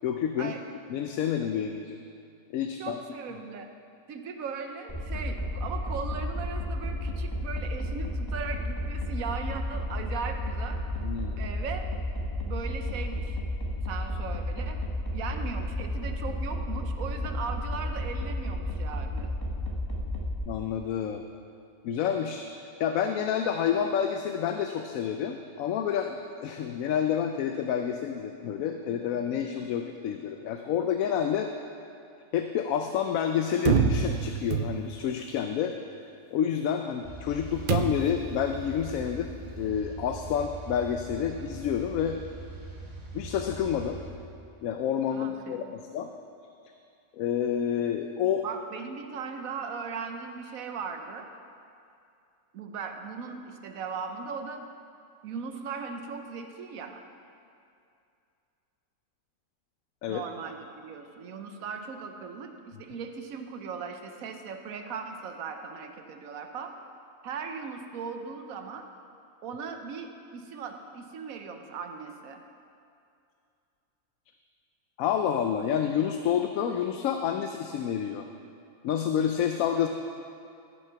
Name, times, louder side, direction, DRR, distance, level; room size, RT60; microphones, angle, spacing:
voice 1, 0.0-0.5 0.9-2.0 2.5-3.0 11.0-11.4 20.5-21.2 21.8-22.4 22.8-31.5 32.3-35.8 36.3-42.2 43.1-44.0 44.6-46.1 47.1-48.4 60.0-60.2 75.0-78.3 78.8-79.9, left 8 dB, 80° left, 6 dB, 1.0 m, -29 dB
voice 2, 2.8-3.7 4.1-10.8 11.4-11.9 12.4-13.4 13.8-14.8 15.1-19.3 45.1-45.8 48.4-51.3 52.5-54.6 55.2-57.0 60.1-66.8 67.2-68.9 69.4-72.4, right 5 dB, 80° right, 6 dB, 1.2 m, -38 dB
sound 1, 4.9-20.4, left 1 dB, 15° left, 1.3 m, -32 dB
sound 2, 33.7-35.1 37.7-38.3, right 6 dB, 65° right, 0.5 m, -26 dB
sound 3, 37.0-44.1, right 3 dB, 30° right, 1.1 m, -42 dB
14.0 x 6.2 x 5.7 m, 2.5 s
omnidirectional pair, 1.4 m